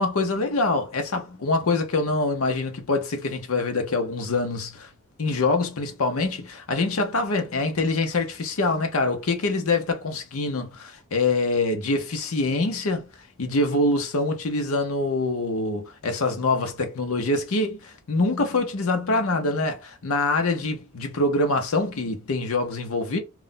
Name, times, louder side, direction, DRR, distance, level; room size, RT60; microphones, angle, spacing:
voice 1, 0.0-4.9 5.2-10.7 11.1-13.1 13.4-23.2, left 2 dB, 70° left, 0.7 m, -25 dB
2.4 x 2.1 x 3.7 m
head